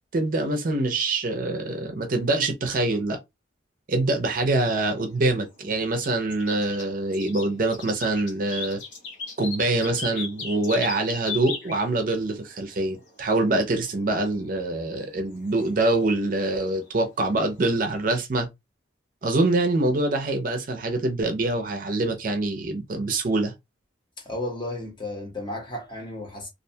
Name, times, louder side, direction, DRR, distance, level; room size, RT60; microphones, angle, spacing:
voice 1, 0.1-3.2 3.9-8.8 9.4-18.5 19.2-23.5, right 2 dB, 45° right, 0.5 m, -25 dB
sound 1, 5.0-17.7, left 5 dB, 80° left, 0.9 m, -38 dB
voice 2, 24.2-26.5, left 1 dB, 25° left, 0.8 m, -33 dB
2.4 x 2.2 x 2.6 m
head